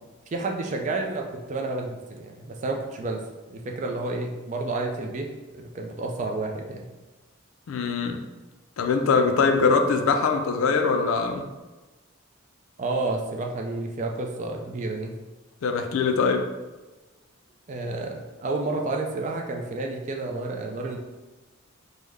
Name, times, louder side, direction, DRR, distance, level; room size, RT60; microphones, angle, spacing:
voice 1, 0.3-3.2 3.5-5.3 5.5-6.9 12.8-15.1 17.7-21.0, right 2 dB, 35° right, 2 dB, 0.3 m, -30 dB
voice 2, 7.7-8.2 8.8-11.4 15.6-16.4, left 4 dB, 75° left, 5 dB, 0.4 m, -22 dB
3.5 x 2.1 x 3.2 m, 1.2 s
head